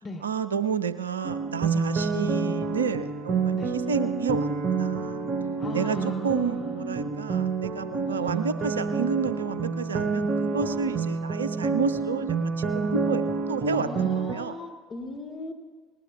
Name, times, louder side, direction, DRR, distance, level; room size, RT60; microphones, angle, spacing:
voice 1, 0.2-5.2 5.7-6.0 6.2-14.5, right 6 dB, 80° right, 13 dB, 0.5 m, -30 dB
sound 1, 1.2-14.3, right 4 dB, 45° right, 0.9 m, -28 dB
voice 2, 5.6-7.0 8.0-8.4 13.7-15.5, left 2 dB, 40° left, 0 dB, 2.9 m, -38 dB
20.0 x 19.0 x 2.4 m, 1.4 s
figure-of-eight pair, 65°, 0 cm